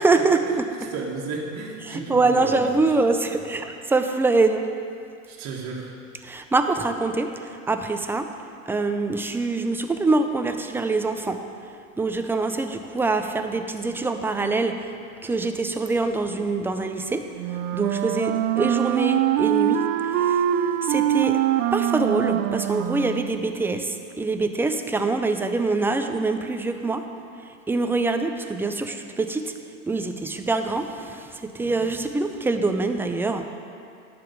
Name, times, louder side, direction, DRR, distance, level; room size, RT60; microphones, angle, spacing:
voice 1, 0.0-0.9 1.8-4.7 6.2-8.3 8.7-11.4 12.0-14.8 15.2-17.2 17.7-19.8 20.1-20.4 20.8-21.4 21.7-27.0 27.7-29.5 29.9-33.5, right 3 dB, 5° right, 6 dB, 0.4 m, -24 dB
voice 2, 0.8-3.0 3.3-3.5 5.3-6.0, right 3 dB, 40° right, -3 dB, 1.7 m, -33 dB
Wind instrument woodwind instrument, 17.4-23.4, right 11 dB, 65° right, 0.7 m, -23 dB
11.0 x 5.2 x 6.9 m, 2.4 s
hypercardioid pair, 100°, 41 cm